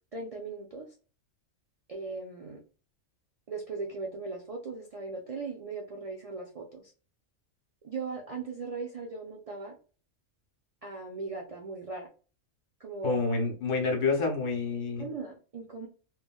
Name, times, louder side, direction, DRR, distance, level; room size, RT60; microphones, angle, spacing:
voice 1, 0.1-0.9 1.9-2.6 3.5-6.9 7.8-9.8 10.8-12.1 12.8-13.2 15.0-15.9, right 4 dB, 60° right, 0 dB, 0.3 m, -38 dB
voice 2, 13.0-15.1, left 4 dB, 75° left, 2 dB, 1.3 m, -28 dB
3.2 x 2.3 x 2.3 m, 0.37 s
omnidirectional pair, 1.3 m